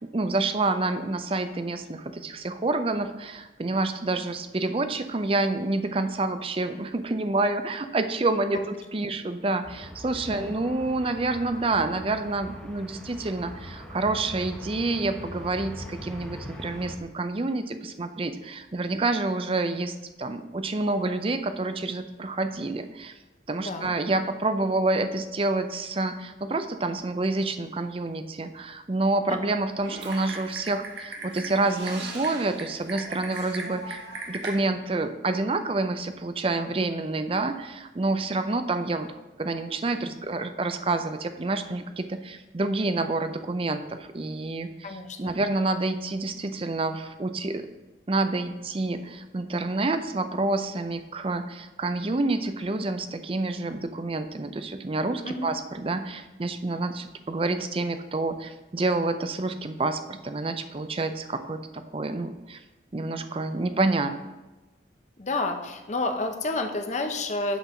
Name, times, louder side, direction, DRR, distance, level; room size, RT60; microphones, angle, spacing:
voice 1, 0.1-23.1 23.5-34.0 34.3-39.1 39.4-47.7 48.1-62.6 62.9-64.1, right 2 dB, 30° right, 9 dB, 0.5 m, -28 dB
sound 1, 9.6-17.0, equal, 5° left, 1.1 m, -42 dB
voice 2, 23.6-23.9 29.3-29.4 44.8-45.3 55.2-55.5 65.2-67.6, left 2 dB, 40° left, 5 dB, 0.8 m, -30 dB
Typing, 29.8-34.6, right 2 dB, 70° right, 1.3 m, -38 dB
8.2 x 4.0 x 5.9 m, 1.1 s
head